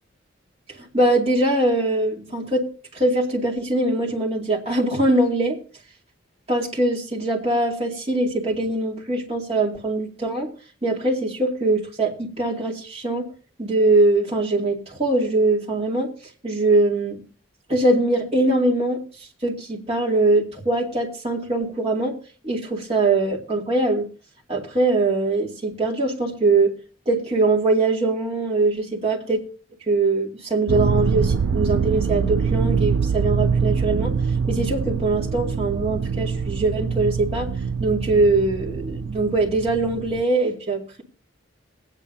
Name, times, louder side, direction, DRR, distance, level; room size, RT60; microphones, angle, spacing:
voice 1, 0.7-5.6 6.5-10.5 10.8-13.3 13.6-16.1 16.4-17.2 17.7-19.0 19.4-22.2 22.4-24.1 24.5-26.7 27.1-29.4 29.9-34.2 34.5-37.5 37.8-41.0, right 2 dB, 30° right, -2 dB, 2.4 m, -22 dB
sound 1, 30.7-40.2, right 6 dB, 65° right, 0.4 m, -24 dB
21.0 x 9.0 x 2.7 m, 0.37 s
head